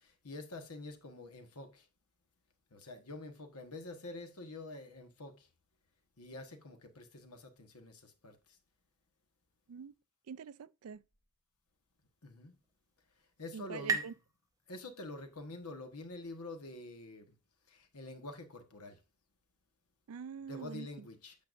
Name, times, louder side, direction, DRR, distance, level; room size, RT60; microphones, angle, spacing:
voice 1, 0.0-1.9 2.7-5.5 6.2-8.6 12.2-12.6 13.4-14.1 14.7-17.3 17.7-19.0 20.5-21.3, left 2 dB, 80° left, 1.4 m, -47 dB
voice 2, 10.3-11.0 13.5-14.1 20.1-21.1, right 6 dB, 70° right, 0.4 m, -45 dB
sound 1, 12.4-15.8, right 4 dB, 15° right, 0.8 m, -41 dB
8.6 x 6.9 x 2.6 m
head